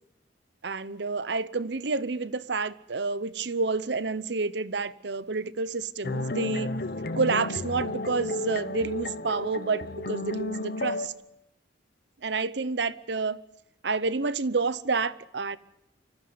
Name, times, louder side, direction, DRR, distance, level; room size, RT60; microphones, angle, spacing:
voice 1, 0.6-6.7 7.2-11.1 12.2-13.4 13.8-15.6, right 4 dB, 70° right, 0.9 m, -29 dB
sound 1, 6.0-11.1, left 2 dB, 55° left, 1.2 m, -32 dB
25.0 x 14.5 x 9.6 m
head